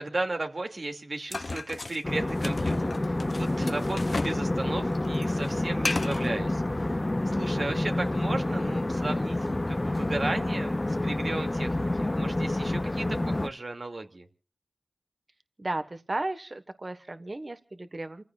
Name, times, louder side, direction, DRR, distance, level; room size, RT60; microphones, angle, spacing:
voice 1, 0.0-7.0 7.3-14.3, right 2 dB, 65° right, 4 dB, 2.5 m, -35 dB
sound 1, 1.3-4.4 4.7-6.3, left 3 dB, 65° left, 0.7 m, -34 dB
sound 2, 2.0-13.5, left 1 dB, 35° left, 0.8 m, -28 dB
voice 2, 15.6-18.2, right 2 dB, 50° right, 10 dB, 1.4 m, -34 dB
28.5 x 15.5 x 2.5 m, 0.39 s
wide cardioid pair, 45°, 0 cm